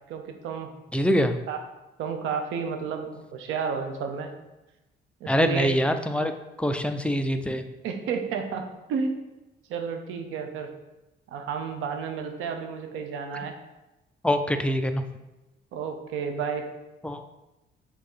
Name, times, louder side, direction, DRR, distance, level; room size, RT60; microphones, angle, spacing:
voice 1, 0.1-0.7 1.5-1.6 2.0-4.3 5.2-5.7 7.8-9.1 9.7-10.7 11.3-13.5 15.7-16.6, right 6 dB, 90° right, 5 dB, 0.8 m, -31 dB
voice 2, 0.9-1.4 5.3-6.3 6.6-7.6 14.2-15.0 17.0-17.3, equal, 5° left, 7 dB, 0.5 m, -24 dB
5.9 x 3.7 x 5.5 m, 1.0 s
cardioid pair, 90°, 20 cm